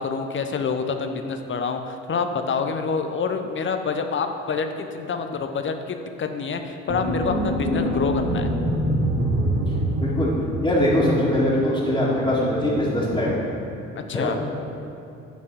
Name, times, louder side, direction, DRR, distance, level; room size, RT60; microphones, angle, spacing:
voice 1, 0.0-8.5 13.9-14.4, left 5 dB, 30° left, 6 dB, 0.8 m, -27 dB
sound 1, 6.9-11.2, equal, 25° right, 1.9 m, -24 dB
voice 2, 10.0-10.3 10.6-13.3 14.1-14.3, left 1 dB, 10° left, -11 dB, 2.2 m, -21 dB
8.1 x 4.7 x 7.0 m, 2.8 s
figure-of-eight pair, 55°, 38 cm